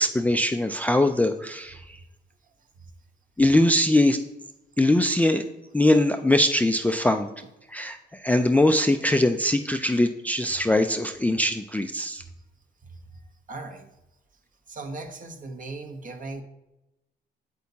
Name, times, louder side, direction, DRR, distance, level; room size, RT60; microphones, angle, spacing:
voice 1, 0.0-2.0 3.4-4.2 4.8-5.4 5.7-7.3 7.7-12.2, left 1 dB, 10° left, 8 dB, 0.4 m, -22 dB
voice 2, 13.5-13.9 14.7-16.4, right 3 dB, 40° right, 6 dB, 1.1 m, -38 dB
8.3 x 8.3 x 2.8 m, 0.93 s
cardioid pair, 90°, 20 cm